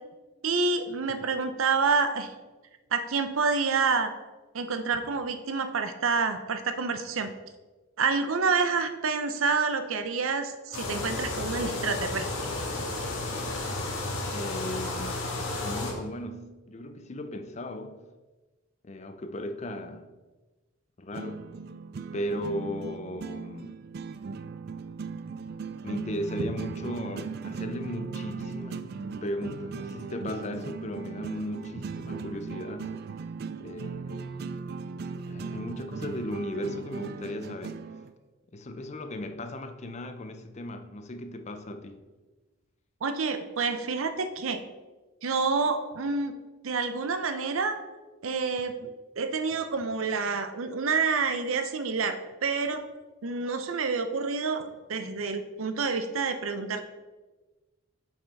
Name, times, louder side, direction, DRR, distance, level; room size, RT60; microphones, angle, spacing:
voice 1, 0.4-2.3 2.9-4.1 4.5-7.3 8.0-12.5 26.4-26.5 43.0-44.6 45.2-46.3 46.6-47.8 48.2-52.9 53.2-56.8, right 4 dB, 80° right, 0.7 m, -28 dB
sound 1, 10.7-15.9, left 2 dB, 80° left, 1.7 m, -32 dB
voice 2, 14.3-18.0 18.8-20.1 21.0-21.5 22.1-23.8 25.8-28.9 29.2-32.9 33.6-34.4 35.3-37.8 38.5-42.1, left 1 dB, 35° left, 0.5 m, -36 dB
sound 2, 21.1-38.1, right 4 dB, 50° right, 0.3 m, -38 dB
7.1 x 5.6 x 4.1 m
head